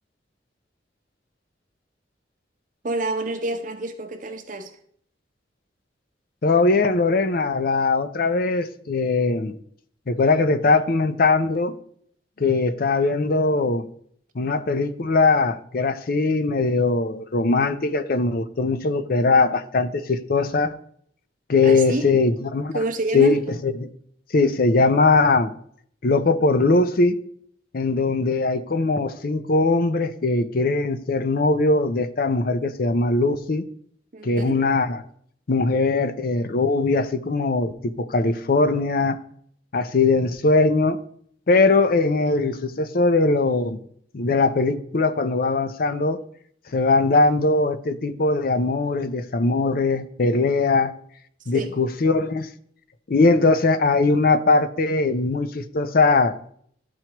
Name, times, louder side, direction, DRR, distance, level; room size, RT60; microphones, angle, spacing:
voice 1, 2.8-4.8 21.6-22.1 22.7-23.4 34.1-34.6 51.5-51.7, right 2 dB, 45° right, 0.8 m, -28 dB
voice 2, 6.4-9.5 10.1-11.7 12.4-13.9 14.4-20.8 21.5-22.7 23.1-23.9 24.3-25.5 26.0-27.2 27.7-33.6 34.2-35.0 35.5-39.2 39.7-41.0 41.5-43.8 44.1-46.2 46.7-50.9 51.5-52.5 53.1-56.4, left 3 dB, 55° left, 0.5 m, -20 dB
12.5 x 4.5 x 2.9 m
head